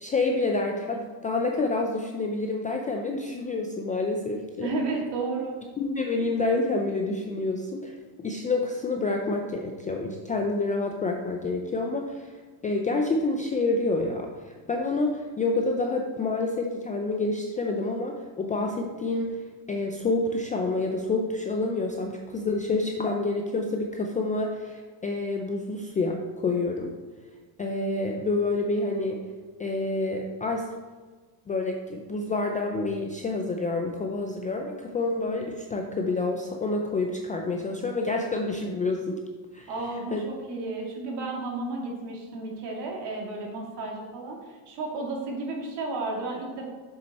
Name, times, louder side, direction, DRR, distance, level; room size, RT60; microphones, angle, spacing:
voice 1, 0.0-4.7 5.8-8.0 8.2-12.4 12.6-19.4 19.7-26.9 27.6-29.2 29.6-30.7 31.5-39.2 39.5-39.7 40.1-40.2, left 3 dB, 20° left, 2 dB, 0.3 m, -28 dB
voice 2, 4.6-5.6 39.7-46.7, right 3 dB, 55° right, -1 dB, 2.2 m, -32 dB
7.1 x 6.3 x 4.1 m, 1.4 s
cardioid pair, 135°, 49 cm